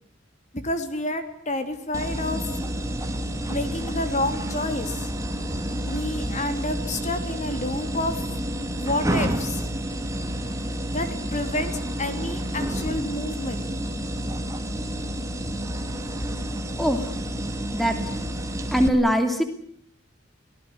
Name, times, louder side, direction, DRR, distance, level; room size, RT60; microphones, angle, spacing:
voice 1, 0.5-2.4 3.5-5.1 5.8-8.2 8.8-9.6 10.9-13.7, left 1 dB, 35° left, 8 dB, 3.4 m, -29 dB
sound 1, 1.9-18.9, equal, 15° right, 2.8 m, -29 dB
voice 2, 18.7-19.4, equal, ahead, 6 dB, 2.8 m, -21 dB
25.0 x 19.0 x 9.6 m, 0.65 s
head